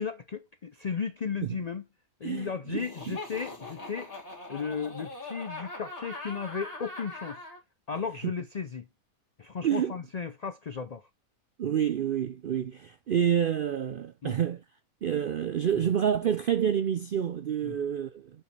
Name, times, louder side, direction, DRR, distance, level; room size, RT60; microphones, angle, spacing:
voice 1, 0.0-1.8 2.2-4.1 4.5-7.4 7.9-8.9 9.4-11.0 14.2-14.4 17.6-17.8, left 6 dB, 80° left, 0.3 m, -35 dB
voice 2, 2.2-3.2 9.6-9.9 11.6-14.6 15.0-18.3, right 9 dB, 75° right, 0.4 m, -28 dB
Laughter, 2.8-7.6, left 2 dB, 25° left, 2.5 m, -41 dB
7.2 x 5.1 x 3.2 m
omnidirectional pair, 1.5 m